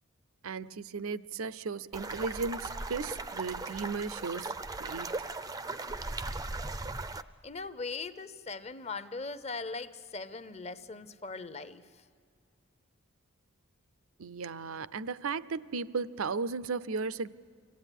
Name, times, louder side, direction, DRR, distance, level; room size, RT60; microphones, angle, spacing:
voice 1, 0.4-5.2 14.2-17.3, right 4 dB, 75° right, 0.6 m, -35 dB
sound 1, 1.9-7.2, right 3 dB, 15° right, 0.5 m, -38 dB
voice 2, 7.4-11.8, left 4 dB, 30° left, 0.8 m, -40 dB
25.5 x 17.0 x 10.0 m
head